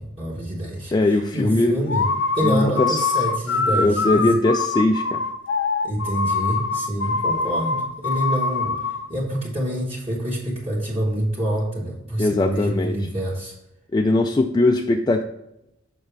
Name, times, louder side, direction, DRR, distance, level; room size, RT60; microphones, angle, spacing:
voice 1, 0.0-2.1 2.3-4.3 5.8-13.5, right 1 dB, 30° right, -4 dB, 1.5 m, -26 dB
voice 2, 0.9-1.7 2.4-3.1 3.7-5.2 12.2-12.9 13.9-15.2, left 2 dB, 20° left, 4 dB, 0.3 m, -20 dB
sound 1, 1.9-9.1, left 4 dB, 65° left, 0.6 m, -24 dB
6.5 x 6.1 x 3.4 m, 0.84 s
head